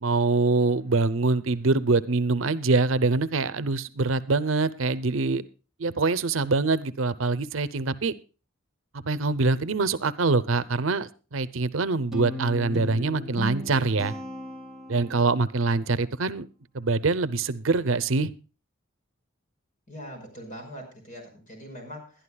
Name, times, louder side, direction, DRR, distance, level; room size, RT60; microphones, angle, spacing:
voice 1, 0.0-5.4 5.8-8.1 9.0-14.1 14.9-16.5 16.7-18.3, right 3 dB, 75° right, 15 dB, 0.7 m, -24 dB
Guitar, 12.1-15.4, left 1 dB, ahead, 3.8 m, -36 dB
voice 2, 19.9-22.1, equal, 40° left, 4 dB, 5.4 m, -41 dB
21.5 x 11.5 x 2.3 m, 0.33 s
head